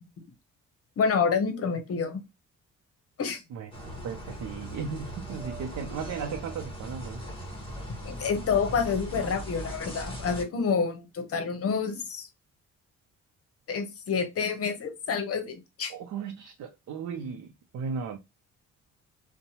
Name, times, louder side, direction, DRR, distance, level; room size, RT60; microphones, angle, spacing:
voice 1, 1.0-2.2 3.2-3.4 8.0-12.3 13.7-15.9, left 5 dB, 50° left, 0.8 m, -28 dB
voice 2, 3.5-7.2 15.9-18.2, right 6 dB, 65° right, 0.5 m, -36 dB
sound 1, 3.7-10.4, equal, 15° left, 1.0 m, -39 dB
2.7 x 2.1 x 2.8 m
cardioid pair, 90°, 30 cm